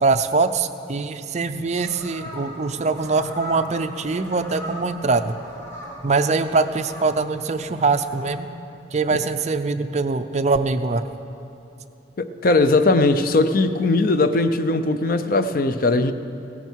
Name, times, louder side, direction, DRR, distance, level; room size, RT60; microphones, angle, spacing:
voice 1, 0.0-5.3 6.0-8.5 8.9-11.1, right 4 dB, 35° right, 9 dB, 0.5 m, -23 dB
sound 1, 1.6-8.3, equal, 15° left, 2.7 m, -39 dB
voice 2, 12.2-16.1, left 2 dB, 50° left, 10 dB, 0.6 m, -19 dB
16.5 x 13.5 x 4.6 m, 3.0 s
head